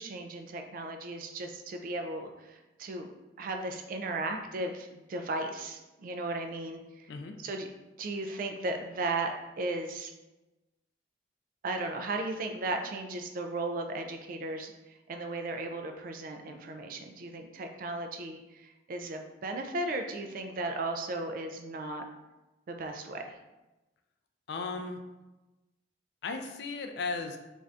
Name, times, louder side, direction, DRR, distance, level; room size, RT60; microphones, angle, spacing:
voice 1, 0.0-3.1 3.4-7.1 7.4-7.7 8.0-10.1 11.6-22.0 22.7-23.3, right 2 dB, 50° right, 5 dB, 0.3 m, -36 dB
voice 2, 24.5-25.0 26.2-27.4, left 4 dB, 65° left, 5 dB, 0.3 m, -36 dB
2.6 x 2.4 x 3.2 m, 1.1 s
head